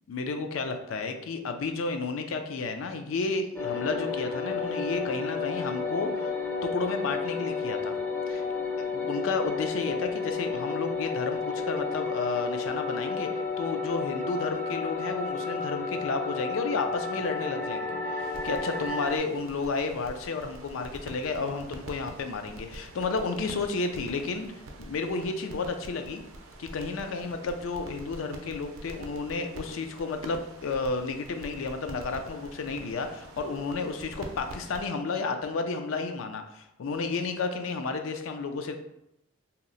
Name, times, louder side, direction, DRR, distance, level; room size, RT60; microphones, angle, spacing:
voice 1, 0.1-6.3 6.6-8.0 8.3-8.4 8.9-24.5 24.8-26.2 26.6-38.7, left 4 dB, 75° left, 6 dB, 0.4 m, -32 dB
sound 1, 3.6-19.2, left 4 dB, 10° left, 0.4 m, -32 dB
sound 2, 18.2-34.9, right 1 dB, 85° right, 0.5 m, -45 dB
2.8 x 2.0 x 3.8 m, 0.82 s
head